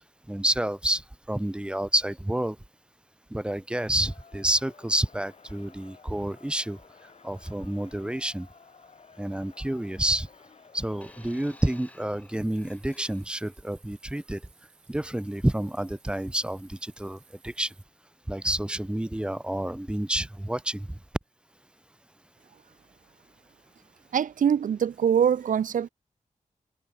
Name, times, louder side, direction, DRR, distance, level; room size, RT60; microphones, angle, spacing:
voice 1, 0.3-1.0 1.3-2.6 3.3-6.8 7.2-8.5 9.2-10.3 10.7-14.4 14.9-17.7 18.3-20.9, right 1 dB, 5° right, 0.5 m, -29 dB
Crowd, 3.9-12.0, left 5 dB, 55° left, 2.6 m, -54 dB
sound 1, 11.0-13.6 14.5-14.6, left 1 dB, 10° left, 4.9 m, -55 dB
sound 2, 12.3-17.9, right 5 dB, 60° right, 5.8 m, -61 dB
voice 2, 24.1-25.9, right 8 dB, 85° right, 0.5 m, -23 dB
wide cardioid pair, 155°, 13 cm